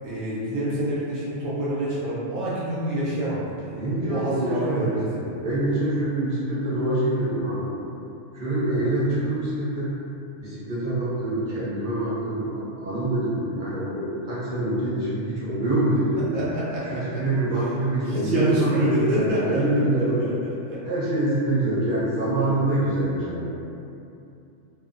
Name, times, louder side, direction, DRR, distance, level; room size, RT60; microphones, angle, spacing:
voice 1, 0.0-5.4 8.7-8.9 16.3-17.2 17.6-17.7 18.0-19.7 20.0-20.3 20.7-20.8 22.3-22.6, right 1 dB, 80° right, -8 dB, 1.1 m, -28 dB
voice 2, 3.7-5.0 5.4-7.7 8.3-9.9 10.4-16.4 16.8-20.3 20.8-23.5, right 1 dB, 50° right, -10 dB, 0.7 m, -25 dB
2.7 x 2.0 x 2.5 m, 2.7 s
omnidirectional pair, 1.3 m